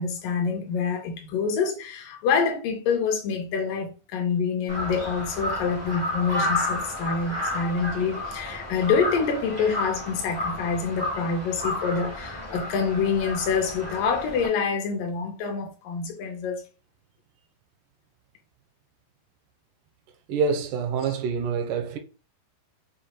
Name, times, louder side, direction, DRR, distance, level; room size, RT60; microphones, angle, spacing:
voice 1, 0.0-16.6, left 5 dB, 75° left, 2.2 m, -26 dB
Crow, 4.7-14.5, left 1 dB, 25° right, 0.5 m, -32 dB
voice 2, 20.3-22.0, right 5 dB, 85° right, 2.0 m, -26 dB
6.5 x 2.4 x 2.9 m
omnidirectional pair, 4.2 m